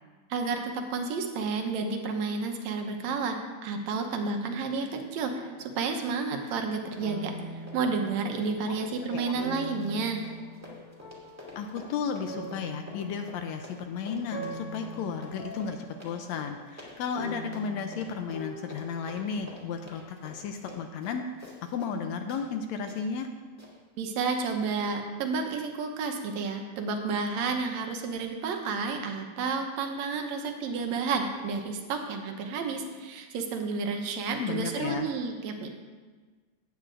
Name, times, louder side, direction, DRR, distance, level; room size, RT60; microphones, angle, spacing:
voice 1, 0.3-7.3 7.7-10.2 24.0-35.7, right 4 dB, 70° right, 4 dB, 2.0 m, -31 dB
sound 1, 5.2-6.7 7.0-8.8 9.4-19.2, right 1 dB, 40° left, 2.1 m, -43 dB
Run, 6.4-6.7 6.9-22.0 22.3-22.4 22.9-23.0 23.6-23.7, left 1 dB, 5° right, 1.6 m, -48 dB
voice 2, 8.7-9.4 11.6-23.3 34.4-35.1, left 6 dB, 80° left, 6 dB, 1.6 m, -34 dB
16.5 x 8.8 x 2.5 m, 1.4 s
omnidirectional pair, 3.6 m